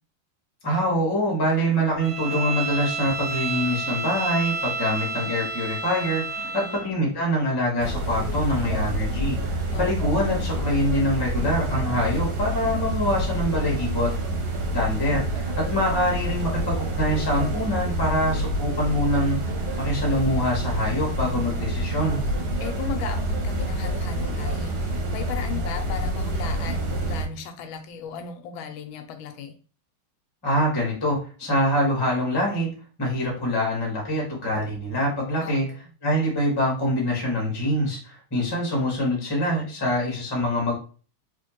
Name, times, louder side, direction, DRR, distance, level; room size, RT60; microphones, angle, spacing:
voice 1, 0.6-14.1 14.7-19.5 19.8-22.2 30.4-32.7 33.0-35.7 36.0-40.8, equal, 15° left, -2 dB, 1.0 m, -25 dB
Bowed string instrument, 2.0-6.9, right 4 dB, 60° right, 0.6 m, -30 dB
voice 2, 6.4-6.8 9.7-9.8 22.6-29.5 35.4-35.8, left 7 dB, 85° left, 7 dB, 1.4 m, -36 dB
sound 1, 7.8-27.3, right 1 dB, 85° right, 1.7 m, -27 dB
3.4 x 3.1 x 2.9 m, 0.39 s
omnidirectional pair, 2.2 m